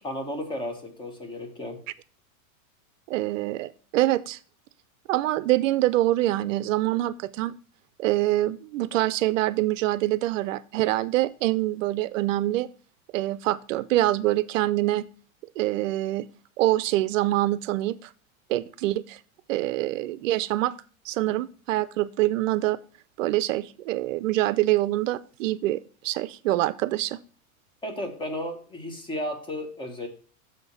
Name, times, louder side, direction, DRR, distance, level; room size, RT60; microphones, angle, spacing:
voice 1, 0.0-1.8 27.8-30.1, left 1 dB, 10° left, 4 dB, 1.1 m, -33 dB
voice 2, 3.1-4.4 5.1-7.6 8.0-12.7 13.1-15.1 15.6-16.3 16.6-18.1 18.5-19.2 19.5-20.7 21.0-22.8 23.2-27.2, right 16 dB, 65° right, 17 dB, 0.5 m, -25 dB
7.0 x 5.2 x 6.7 m, 0.41 s
supercardioid pair, 160°, 41 cm